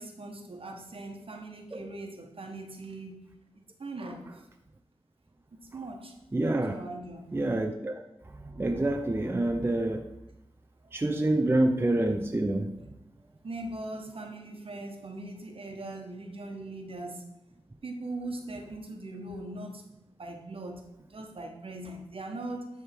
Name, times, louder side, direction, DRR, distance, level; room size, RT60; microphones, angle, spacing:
voice 1, 0.0-3.2 3.5-4.4 5.5-6.1 6.7-7.2 11.2-11.5 13.4-17.3 17.8-20.8 21.1-22.7, right 2 dB, 60° right, 3 dB, 1.2 m, -40 dB
voice 2, 6.3-6.8 7.3-8.0 8.4-10.0 10.9-12.7, right 1 dB, 20° right, 5 dB, 0.5 m, -27 dB
9.9 x 3.6 x 4.5 m, 0.90 s
wide cardioid pair, 65°, 11 cm